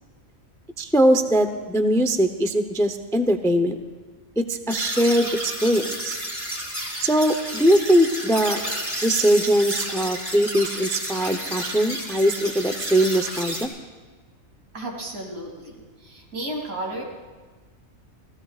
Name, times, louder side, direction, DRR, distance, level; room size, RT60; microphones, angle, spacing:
voice 1, 0.8-3.8 4.4-6.2 7.0-8.6 9.0-13.7, equal, 5° left, 8 dB, 0.4 m, -21 dB
sound 1, 4.7-13.6, equal, 15° right, 2.7 m, -31 dB
voice 2, 14.7-15.8 16.0-17.0, right 1 dB, 80° right, 0 dB, 3.2 m, -33 dB
29.5 x 16.5 x 2.4 m, 1.4 s
omnidirectional pair, 1.4 m